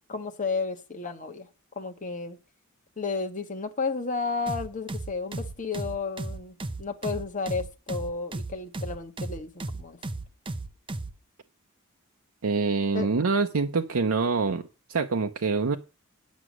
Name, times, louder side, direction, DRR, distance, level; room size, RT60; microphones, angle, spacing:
voice 1, 0.1-1.5 1.7-2.4 3.0-10.0 12.9-13.1, left 4 dB, 40° left, 1.4 m, -32 dB
sound 1, 4.5-11.2, right 2 dB, 25° right, 0.6 m, -35 dB
voice 2, 12.4-15.8, right 4 dB, 90° right, 0.7 m, -25 dB
9.7 x 6.1 x 6.1 m
head